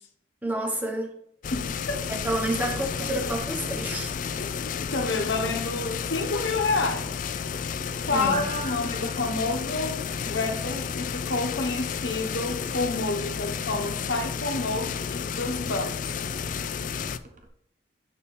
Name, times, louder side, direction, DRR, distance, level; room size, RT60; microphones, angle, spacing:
voice 1, 0.4-1.1 2.1-4.1 8.1-8.4, right 1 dB, 10° right, 1.1 m, -29 dB
sound 1, 1.4-17.2, left 6 dB, 45° left, 0.3 m, -32 dB
voice 2, 1.5-2.1 4.4-7.1 8.0-16.0, left 3 dB, 75° left, 1.1 m, -29 dB
sound 2, 2.2-16.3, left 1 dB, 25° left, 0.8 m, -47 dB
sound 3, 8.3-17.5, right 2 dB, 40° right, 0.8 m, -48 dB
6.8 x 4.2 x 5.2 m
head